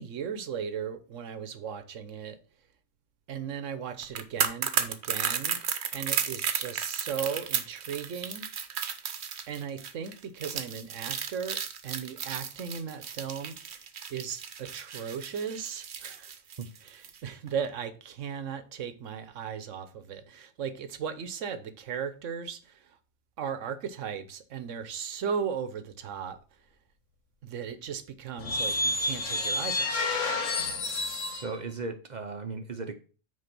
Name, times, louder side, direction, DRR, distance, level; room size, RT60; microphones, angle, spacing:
voice 1, 0.0-2.4 3.3-5.6 5.9-8.5 9.5-13.5 14.1-16.3 16.8-22.9 23.4-26.4 27.4-30.2, right 7 dB, 85° right, 1.2 m, -36 dB
sound 1, 4.0-17.2 17.5-17.7, right 7 dB, 65° right, 1.0 m, -33 dB
sound 2, 28.4-31.5, left 2 dB, 80° left, 1.5 m, -29 dB
voice 2, 31.3-33.0, right 4 dB, 45° right, 0.7 m, -36 dB
6.5 x 4.5 x 6.0 m
omnidirectional pair, 1.3 m